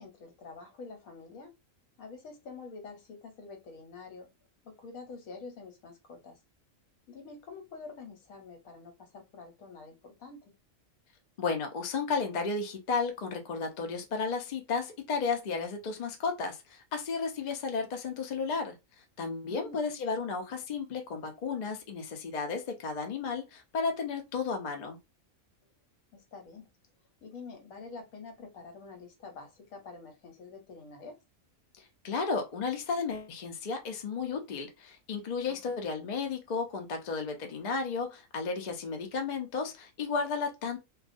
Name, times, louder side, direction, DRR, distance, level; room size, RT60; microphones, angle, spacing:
voice 1, 0.0-1.5 2.0-4.3 4.6-6.4 7.1-10.5 19.5-19.9 26.1-26.7 27.2-31.2 35.5-35.8, left 4 dB, 80° left, 1.2 m, -47 dB
voice 2, 11.4-18.8 19.2-25.0 32.0-40.8, left 4 dB, 55° left, 0.4 m, -33 dB
2.4 x 2.2 x 2.4 m
omnidirectional pair, 1.4 m